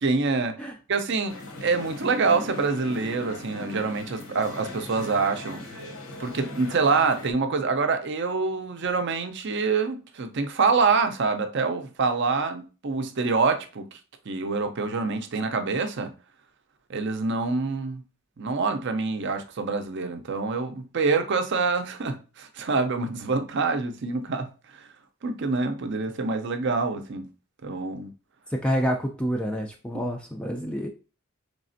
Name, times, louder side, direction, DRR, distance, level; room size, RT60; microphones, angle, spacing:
voice 1, 0.0-0.6 0.9-5.6 6.2-14.0 14.3-16.1 16.9-18.0 18.4-24.9 25.2-27.3 27.6-28.1 29.9-30.0, right 4 dB, 50° right, 0.5 m, -26 dB
sound 1, 1.3-7.3, left 2 dB, 70° left, 1.0 m, -39 dB
voice 2, 28.5-30.9, equal, 5° left, 0.3 m, -28 dB
4.1 x 3.4 x 2.6 m
head